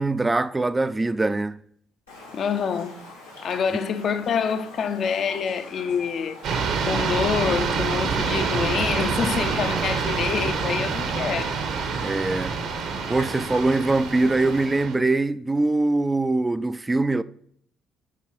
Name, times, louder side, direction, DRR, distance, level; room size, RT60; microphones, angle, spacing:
voice 1, 0.0-1.6 12.0-12.5 13.1-17.2, right 2 dB, 20° right, 0.3 m, -23 dB
Raindrop, 2.1-14.6, left 3 dB, 85° left, 1.6 m, -44 dB
voice 2, 2.3-3.0 3.4-6.4 6.9-11.6, left 6 dB, 50° left, 0.5 m, -26 dB
sound 1, 6.4-15.0, right 5 dB, 60° right, 0.9 m, -27 dB
6.6 x 4.6 x 5.2 m
figure-of-eight pair, 50°, 0 cm